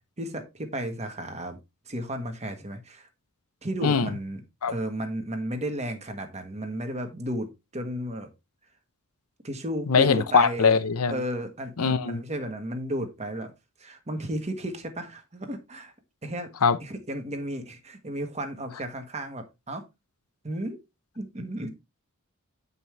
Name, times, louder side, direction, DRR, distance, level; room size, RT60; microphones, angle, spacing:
voice 1, 0.2-1.6 1.8-3.1 3.6-4.4 4.7-8.3 9.4-10.8 11.1-13.5 13.8-15.9 16.2-16.5 16.8-19.9 20.4-20.8 21.1-21.7, right 1 dB, 30° right, 1.5 m, -33 dB
voice 2, 9.9-11.1 11.8-12.2 16.6-16.8, left 5 dB, 85° left, 0.7 m, -21 dB
9.0 x 5.5 x 3.3 m
head